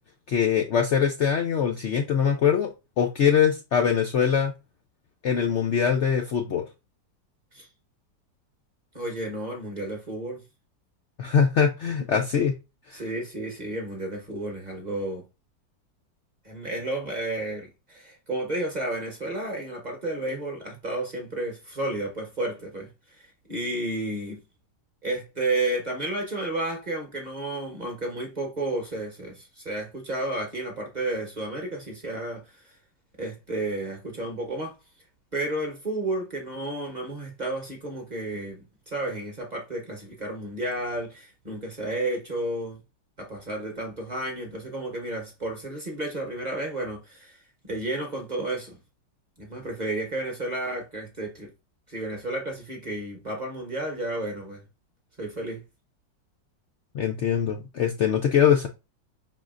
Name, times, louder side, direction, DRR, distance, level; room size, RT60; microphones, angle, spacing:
voice 1, 0.3-4.5 5.2-6.6 11.2-12.5 12.9-13.0 56.9-58.7, left 7 dB, 85° left, 0.6 m, -23 dB
voice 2, 8.9-10.4 12.1-12.2 12.9-15.2 16.4-24.4 25.0-32.7 33.2-34.7 35.3-42.8 43.2-47.4 47.6-48.8 49.4-51.5 51.9-54.6 55.2-55.6, right 2 dB, 30° right, 0.9 m, -32 dB
5.2 x 3.9 x 2.4 m
omnidirectional pair, 1.9 m